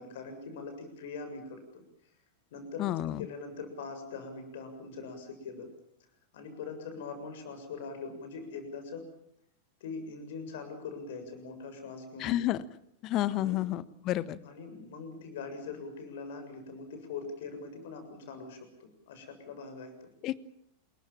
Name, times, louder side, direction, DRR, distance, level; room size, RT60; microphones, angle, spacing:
voice 1, 0.0-1.8 2.5-2.9 3.2-5.7 6.3-9.1 9.8-12.5 13.3-13.8 14.4-20.1, left 4 dB, 55° left, 8 dB, 7.1 m, -42 dB
voice 2, 2.8-3.3 12.2-12.6 13.0-14.4 20.2-20.4, left 14 dB, 35° left, 17 dB, 1.3 m, -30 dB
28.5 x 22.5 x 7.4 m, 0.72 s
figure-of-eight pair, 90°, 0 cm